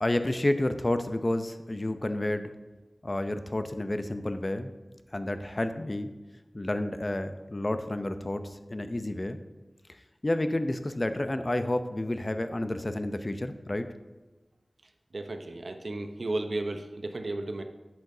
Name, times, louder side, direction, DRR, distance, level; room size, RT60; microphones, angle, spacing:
voice 1, 0.0-2.5 3.0-4.7 5.1-6.1 6.5-9.4 10.2-13.9, left 1 dB, 35° left, 9 dB, 0.6 m, -30 dB
voice 2, 15.1-17.6, right 2 dB, 70° right, 6 dB, 0.8 m, -34 dB
10.5 x 8.6 x 2.7 m, 1.2 s
wide cardioid pair, 50°, 0 cm